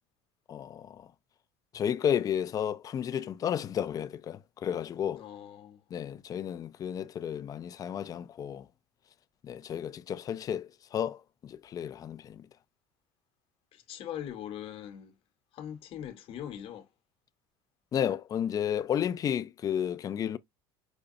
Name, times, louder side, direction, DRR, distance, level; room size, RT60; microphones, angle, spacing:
voice 1, 0.5-1.1 1.7-5.2 5.9-8.7 9.4-12.5 17.9-20.4, left 9 dB, 30° left, 0.4 m, -32 dB
voice 2, 5.2-5.8 13.7-15.1 15.5-16.9, left 10 dB, 50° left, 1.0 m, -41 dB
5.1 x 2.2 x 2.6 m
supercardioid pair, 110°, 12 cm